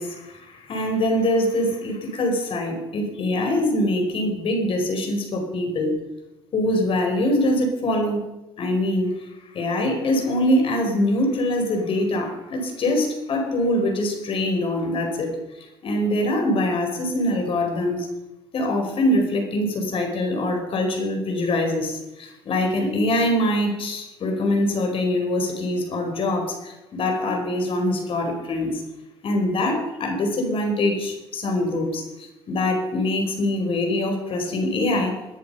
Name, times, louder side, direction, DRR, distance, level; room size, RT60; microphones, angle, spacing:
voice 1, 0.0-6.0 6.5-8.2 8.6-9.1 9.5-15.4 15.8-18.1 18.5-28.8 29.2-35.2, left 1 dB, 50° left, 4 dB, 4.5 m, -23 dB
19.0 x 10.5 x 5.4 m, 0.98 s
hypercardioid pair, 60°, 12 cm